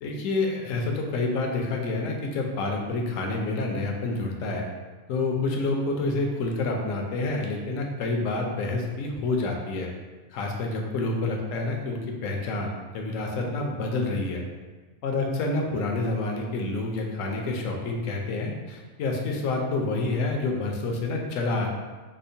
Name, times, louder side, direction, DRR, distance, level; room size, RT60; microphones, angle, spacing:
voice 1, 0.0-4.7 5.1-9.9 10.3-14.5 15.0-21.7, left 2 dB, 75° left, 1 dB, 0.9 m, -28 dB
5.1 x 2.0 x 2.6 m, 1.3 s
omnidirectional pair, 1.4 m